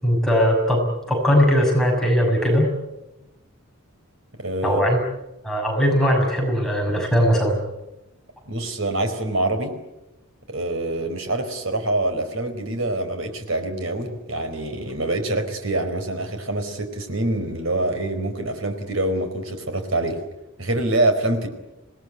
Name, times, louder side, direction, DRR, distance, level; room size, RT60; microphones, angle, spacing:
voice 1, 0.0-2.7 4.6-5.0 5.4-7.6, equal, ahead, -1 dB, 6.2 m, -19 dB
voice 2, 4.4-4.8 8.5-9.7 10.5-20.2 20.6-21.5, right 2 dB, 70° right, 7 dB, 4.6 m, -25 dB
26.5 x 19.5 x 9.4 m, 0.96 s
head